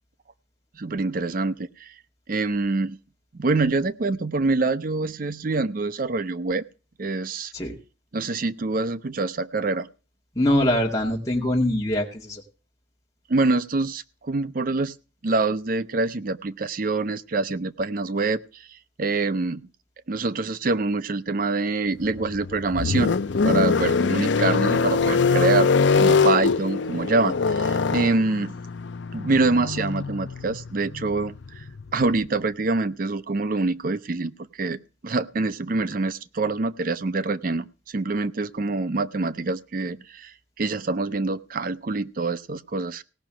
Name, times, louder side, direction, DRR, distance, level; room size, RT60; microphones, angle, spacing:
voice 1, 0.8-1.9 2.3-3.0 3.3-6.6 7.0-7.5 8.1-9.9 13.3-14.9 15.2-19.7 20.1-23.2 23.4-28.5 29.1-31.6 31.9-43.0, right 3 dB, 45° right, 15 dB, 0.5 m, -25 dB
voice 2, 10.4-12.4, left 1 dB, 15° left, -1 dB, 2.1 m, -23 dB
sound 1, 22.0-32.2, left 4 dB, 70° left, 0.6 m, -23 dB
17.0 x 6.0 x 7.5 m, 0.36 s
head